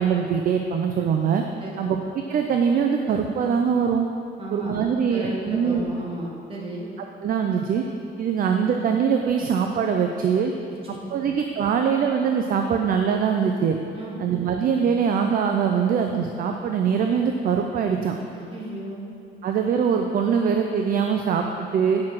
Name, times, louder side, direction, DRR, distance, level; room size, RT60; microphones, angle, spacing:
voice 1, 0.0-1.4 1.8-2.0 2.3-4.1 4.5-5.8 7.2-7.8 8.2-10.5 10.9-13.8 14.2-18.1 19.4-22.0, right 7 dB, 50° right, 4 dB, 0.5 m, -22 dB
voice 2, 4.4-4.8 5.1-6.9 11.1-11.3 13.9-14.2 18.3-19.1, right 2 dB, 30° right, -3 dB, 1.6 m, -34 dB
9.6 x 5.9 x 4.7 m, 2.5 s
cardioid pair, 160°, 19 cm